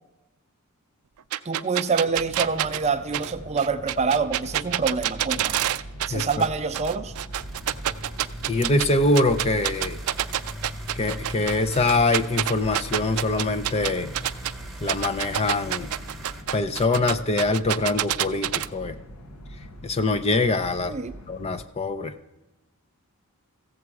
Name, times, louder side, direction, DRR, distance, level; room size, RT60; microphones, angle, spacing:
sound 1, 1.3-6.5 6.7-8.9 9.1-14.5 14.9-18.7, right 12 dB, 80° right, 0.4 m, -27 dB
voice 1, 1.4-5.6 6.1-7.1 20.9-21.2, right 5 dB, 30° right, 9 dB, 0.6 m, -26 dB
sound 2, 2.0-21.6, equal, 90° left, 1.2 m, -41 dB
sound 3, 7.3-16.4, equal, ahead, 1.0 m, -41 dB
voice 2, 8.5-10.0 11.0-14.1 14.8-15.9 16.5-19.0 19.8-20.9 21.3-22.1, left 2 dB, 30° left, 11 dB, 0.5 m, -24 dB
15.5 x 7.3 x 4.7 m, 1.0 s
head